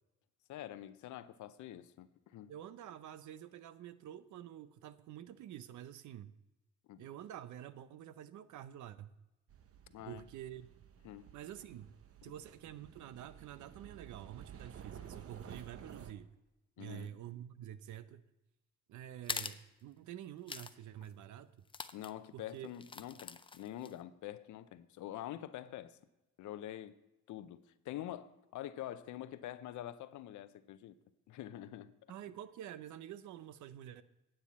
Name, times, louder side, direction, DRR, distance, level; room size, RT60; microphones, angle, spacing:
voice 1, 0.5-2.5 6.9-7.1 9.9-10.3 11.0-11.3 16.8-17.1 21.9-26.0 26.4-27.0 27.3-31.0 31.3-31.9, left 12 dB, 75° left, 0.6 m, -46 dB
voice 2, 2.5-6.3 7.0-9.1 10.1-10.7 11.3-11.9 12.2-16.3 16.8-18.2 18.9-21.5 22.3-22.7 32.1-34.0, right 11 dB, 75° right, 0.6 m, -48 dB
sound 1, 9.5-16.1, right 8 dB, 50° right, 0.9 m, -53 dB
sound 2, 19.2-19.6 20.5-20.7 21.0-21.1 21.7-22.1 22.7-23.9, left 4 dB, 15° left, 0.4 m, -42 dB
9.6 x 8.9 x 4.1 m
cardioid pair, 90°, 30 cm